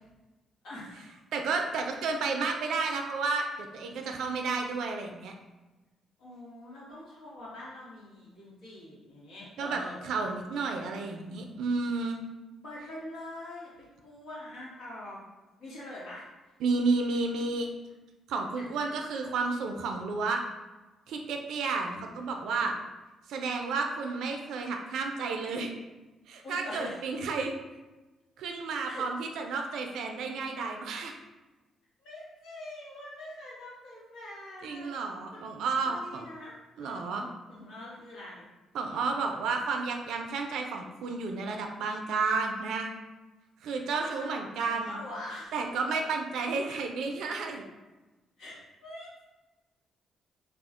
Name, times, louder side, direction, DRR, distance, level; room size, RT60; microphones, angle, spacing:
voice 1, 0.6-1.1 6.2-10.1 12.6-15.2 15.6-16.5 18.6-18.7 26.4-27.0 28.9-29.1 32.0-34.9 35.3-35.4 35.8-38.4 43.9-45.6 48.4-49.1, left 1 dB, 80° left, -7 dB, 1.1 m, -44 dB
voice 2, 1.3-5.3 9.6-12.2 16.6-17.7 18.3-20.4 21.1-22.7 23.3-25.8 26.3-27.6 28.4-31.2 34.6-36.2 36.8-37.2 38.7-42.9 43.6-45.0 45.5-47.6, right 4 dB, 80° right, 3 dB, 0.3 m, -31 dB
2.3 x 2.1 x 3.6 m, 1.1 s
cardioid pair, 90°, 0 cm